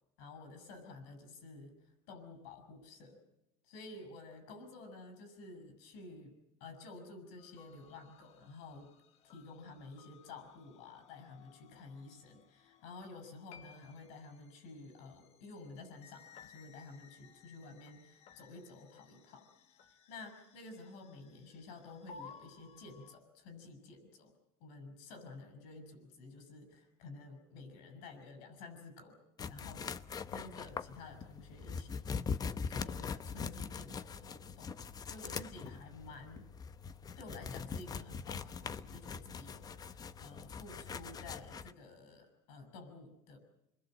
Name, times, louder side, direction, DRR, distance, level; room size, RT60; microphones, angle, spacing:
voice 1, 0.2-3.2 3.6-6.3 6.6-8.9 9.2-19.5 20.1-24.3 24.6-29.2 29.5-29.9 30.3-32.3 32.7-34.7 35.1-36.5 37.2-43.4, left 3 dB, 85° left, 8 dB, 6.8 m, -51 dB
sound 1, 7.4-23.2, left 6 dB, 50° left, 1.7 m, -60 dB
sound 2, 29.4-41.7, left 5 dB, 30° left, 0.9 m, -42 dB
27.0 x 21.5 x 7.7 m, 0.88 s
cardioid pair, 125°, 13 cm